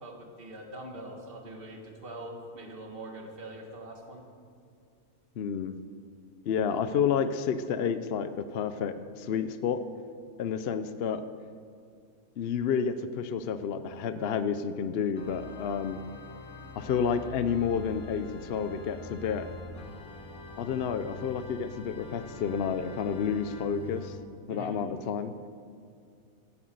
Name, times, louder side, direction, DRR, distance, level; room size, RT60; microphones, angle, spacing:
voice 1, 0.0-4.2 24.5-24.8, right 1 dB, 40° right, 2 dB, 1.9 m, -43 dB
voice 2, 5.4-5.8 6.5-9.8 10.4-11.2 12.4-16.0 16.8-19.5 20.6-24.2 24.5-25.3, left 7 dB, 60° left, 10 dB, 0.7 m, -30 dB
Organ, 15.2-24.3, left 4 dB, 80° left, 1.8 m, -45 dB
15.5 x 7.9 x 7.8 m, 2.4 s
omnidirectional pair, 1.5 m